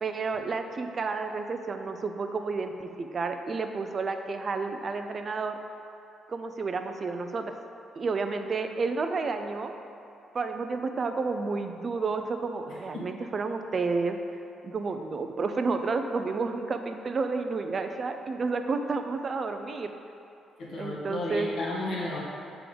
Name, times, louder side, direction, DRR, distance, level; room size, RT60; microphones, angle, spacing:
voice 1, 0.0-5.6 6.3-7.5 8.0-9.7 10.3-14.2 14.6-19.9 20.8-21.5, right 4 dB, 40° right, 7 dB, 0.5 m, -31 dB
voice 2, 12.7-13.1 20.6-22.2, left 2 dB, 70° left, -4 dB, 1.4 m, -33 dB
6.8 x 3.7 x 5.0 m, 2.7 s
cardioid pair, 90°, 0 cm